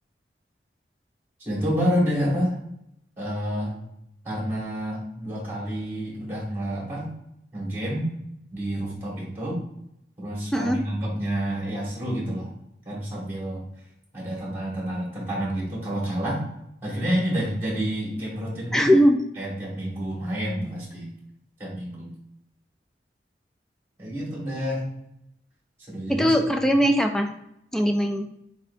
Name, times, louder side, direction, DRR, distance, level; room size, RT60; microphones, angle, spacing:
voice 1, 1.4-2.6 3.2-3.8 4.2-7.1 7.5-8.1 8.5-9.6 10.2-12.5 12.9-13.6 14.1-16.5 16.8-18.9 19.4-21.1 21.6-22.1 24.0-24.9 25.9-26.3 26.7-26.8, equal, 15° right, -5 dB, 1.8 m, -28 dB
voice 2, 18.7-19.2 26.1-27.3 27.7-28.3, equal, 5° left, 4 dB, 0.4 m, -20 dB
4.3 x 4.2 x 2.7 m, 0.77 s
head